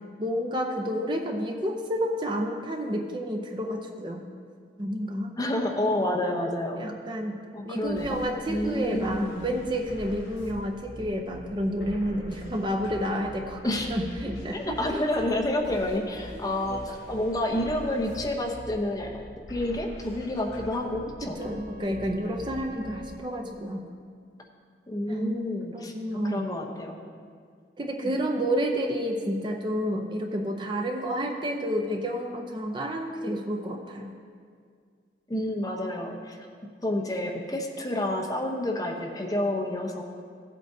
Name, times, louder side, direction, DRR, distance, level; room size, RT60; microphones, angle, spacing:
voice 1, 0.2-4.3 4.8-5.3 6.8-7.4 7.7-13.6 13.9-15.1 16.7-17.0 21.2-23.8 25.1-26.4 27.8-34.1, equal, 25° right, 2 dB, 0.6 m, -30 dB
voice 2, 5.4-6.8 7.5-8.2 8.5-9.5 13.6-13.9 14.5-21.4 24.9-25.9 26.2-27.0 28.0-28.1 35.3-36.4 36.8-40.0, left 1 dB, 20° left, 0 dB, 0.8 m, -29 dB
sound 1, 7.8-23.2, equal, 70° left, 2.5 m, -44 dB
16.0 x 8.3 x 2.7 m, 2.1 s
head